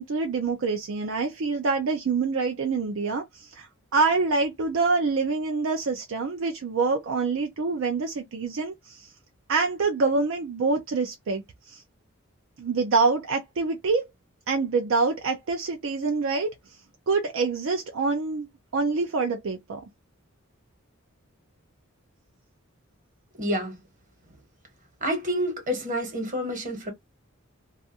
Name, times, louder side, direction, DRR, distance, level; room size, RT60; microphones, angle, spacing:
voice 1, 0.0-9.1 9.5-11.8 12.6-14.1 14.5-16.8 17.1-18.5 18.7-19.8, right 4 dB, 65° right, 0.4 m, -26 dB
voice 2, 23.4-23.8 25.0-26.9, equal, 40° right, 1.1 m, -28 dB
2.4 x 2.4 x 2.6 m
head